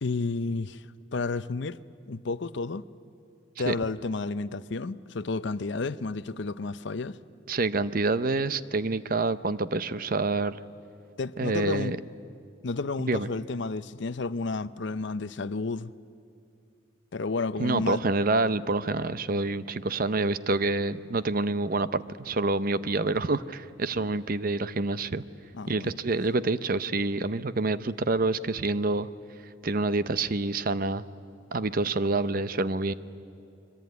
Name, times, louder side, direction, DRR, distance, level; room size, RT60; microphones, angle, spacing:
voice 1, 0.0-0.9 1.1-1.8 2.1-2.9 3.6-7.2 11.2-11.9 12.6-15.9 17.1-18.0 25.5-25.9, left 3 dB, 60° left, 0.6 m, -31 dB
voice 2, 7.5-10.6 11.4-12.0 13.1-13.3 17.6-25.2 25.7-29.1 29.6-31.0 31.5-32.9, right 3 dB, 45° right, 0.6 m, -27 dB
26.0 x 23.0 x 9.4 m
head